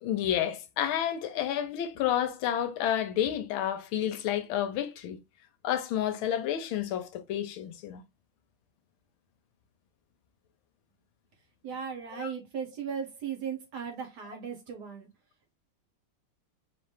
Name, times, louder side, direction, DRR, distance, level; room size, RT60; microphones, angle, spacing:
voice 1, 0.0-5.2 5.6-8.0 12.2-12.3, left 10 dB, 80° left, 1.4 m, -30 dB
voice 2, 11.6-15.1, right 7 dB, 60° right, 1.2 m, -37 dB
4.3 x 3.1 x 3.2 m
omnidirectional pair, 2.3 m